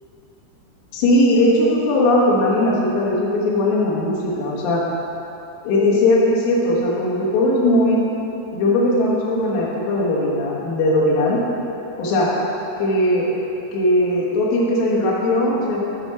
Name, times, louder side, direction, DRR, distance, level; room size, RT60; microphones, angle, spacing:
voice 1, 0.9-4.8 5.6-8.0 8.5-11.4 12.0-12.3 12.8-13.3 13.7-15.8, left 1 dB, 80° left, -6 dB, 3.8 m, -18 dB
10.0 x 3.5 x 5.7 m, 3.0 s
omnidirectional pair, 5.7 m